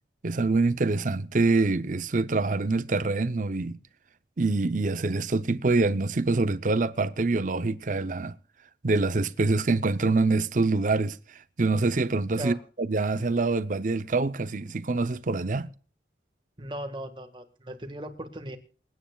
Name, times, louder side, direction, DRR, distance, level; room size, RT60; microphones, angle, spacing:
voice 1, 0.2-3.8 4.4-8.3 8.8-11.2 11.6-15.7, right 3 dB, 45° right, 0.6 m, -25 dB
voice 2, 16.6-18.6, right 1 dB, 25° right, 1.6 m, -37 dB
27.5 x 9.4 x 2.3 m
head